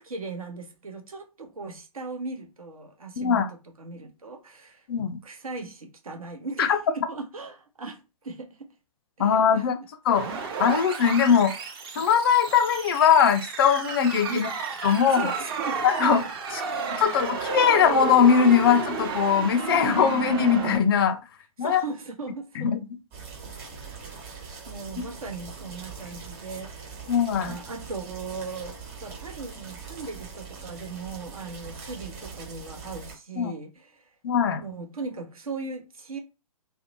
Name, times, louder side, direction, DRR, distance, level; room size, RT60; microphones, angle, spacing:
voice 1, 0.0-3.4 3.8-4.8 5.2-6.8 7.1-8.7 9.2-9.7 14.3-14.5 15.1-16.2 16.5-16.7 17.0-17.1 21.6-22.7 24.3-27.0 27.3-34.0 34.6-36.2, right 3 dB, 75° right, 0.8 m, -38 dB
voice 2, 3.2-3.5 4.9-5.2 6.6-6.8 9.2-9.7 10.1-10.2 10.6-11.5 12.0-14.5 14.8-15.3 15.8-16.2 17.0-21.2 21.6-21.8 22.6-22.8 25.0-25.1 27.1-27.5 33.4-33.5 34.2-34.6, left 7 dB, 40° left, 0.4 m, -21 dB
sound 1, 10.1-20.8, right 5 dB, 40° right, 0.7 m, -31 dB
sound 2, 23.1-33.1, right 5 dB, 25° right, 1.2 m, -42 dB
2.6 x 2.0 x 2.7 m
figure-of-eight pair, 120°, 19 cm